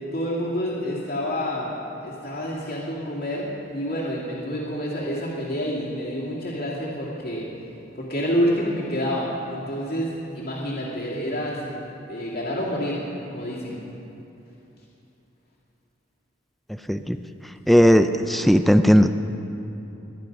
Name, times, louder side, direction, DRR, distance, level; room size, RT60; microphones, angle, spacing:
voice 1, 0.1-7.4 7.9-11.7 12.1-13.8, equal, 55° left, -6 dB, 2.4 m, -28 dB
voice 2, 17.7-19.1, equal, ahead, 9 dB, 0.4 m, -16 dB
22.0 x 10.5 x 5.3 m, 2.9 s
head